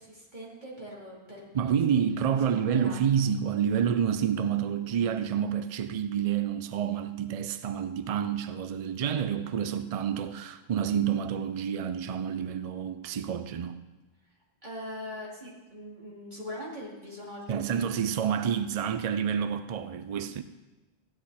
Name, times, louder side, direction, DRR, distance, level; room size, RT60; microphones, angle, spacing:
voice 1, 0.0-2.0 2.4-3.2 14.6-17.9, left 1 dB, 40° right, 3.2 m, -42 dB
voice 2, 1.5-13.8 17.5-20.4, right 8 dB, 55° right, 0.4 m, -28 dB
15.0 x 9.9 x 4.2 m
omnidirectional pair, 1.2 m